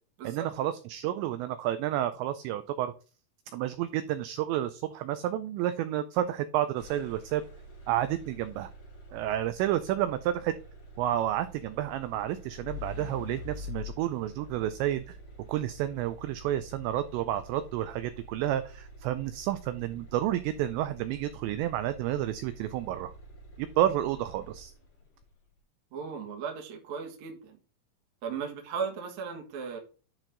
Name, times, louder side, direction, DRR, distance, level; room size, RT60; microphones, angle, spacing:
voice 1, 0.2-2.9 3.5-7.4 7.9-8.7 9.1-10.5 11.0-15.2 15.5-23.1 23.6-24.7, right 12 dB, 90° right, 11 dB, 2.5 m, -30 dB
sound 1, 6.8-25.0, left 1 dB, 45° left, 5.0 m, -47 dB
voice 2, 25.9-27.6 28.2-29.8, right 6 dB, 60° right, 1 dB, 2.0 m, -36 dB
10.5 x 4.5 x 3.8 m, 0.37 s
omnidirectional pair, 5.7 m